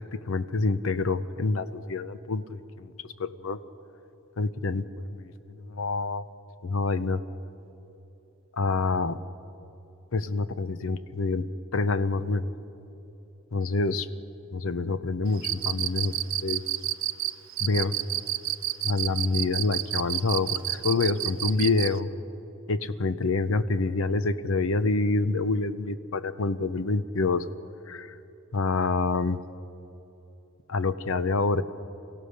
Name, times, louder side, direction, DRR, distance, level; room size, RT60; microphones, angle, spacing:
voice 1, 0.0-2.9 3.2-3.6 4.4-6.2 6.6-7.2 8.5-9.2 10.1-11.5 11.7-12.5 13.5-14.1 14.5-16.6 17.6-17.9 18.8-22.1 22.7-27.5 27.9-28.2 28.5-29.4 30.7-31.6, left 3 dB, 70° left, 13 dB, 0.8 m, -27 dB
Cricket, 15.4-22.0, right 14 dB, 70° right, 0.6 m, -29 dB
29.0 x 16.0 x 6.6 m, 3.0 s
head